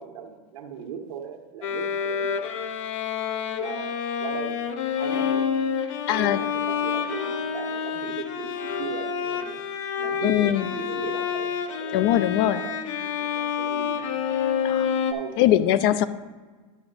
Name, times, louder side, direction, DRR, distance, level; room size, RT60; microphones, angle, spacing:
voice 1, 0.0-2.6 3.6-3.9 4.2-5.5 6.1-9.6 9.9-14.1 15.1-15.4, right 7 dB, 85° right, 3 dB, 1.3 m, -38 dB
Bowed string instrument, 1.6-15.1, left 7 dB, 70° left, 0.7 m, -28 dB
voice 2, 6.1-6.4 10.2-10.7 11.9-12.6 14.6-14.9 15.4-16.0, left 12 dB, 45° left, 14 dB, 0.4 m, -21 dB
10.0 x 3.5 x 6.7 m, 1.4 s
supercardioid pair, 150°, 17 cm